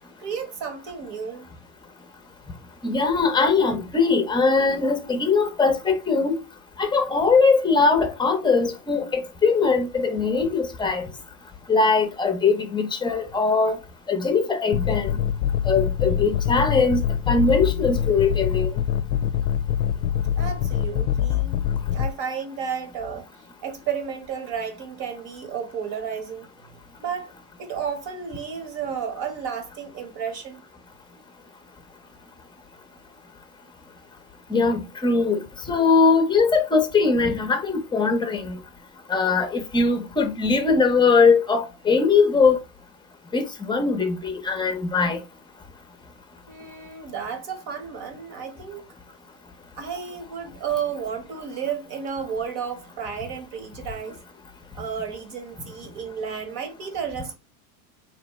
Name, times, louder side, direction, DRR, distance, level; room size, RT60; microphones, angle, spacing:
voice 1, 0.2-1.5 20.4-21.6 21.9-23.3 23.6-26.5 27.0-27.3 27.6-30.6 46.5-48.9 49.8-54.2 54.7-57.3, right 7 dB, 55° right, 1.4 m, -32 dB
voice 2, 2.8-6.4 6.8-11.1 11.7-13.8 14.1-15.1 15.7-18.7 34.5-35.4 35.7-38.6 39.1-42.6 43.3-45.2, left 4 dB, 10° left, 0.7 m, -21 dB
sound 1, 14.7-22.1, left 10 dB, 65° left, 0.5 m, -24 dB
4.0 x 3.1 x 3.1 m
supercardioid pair, 120°, 43 cm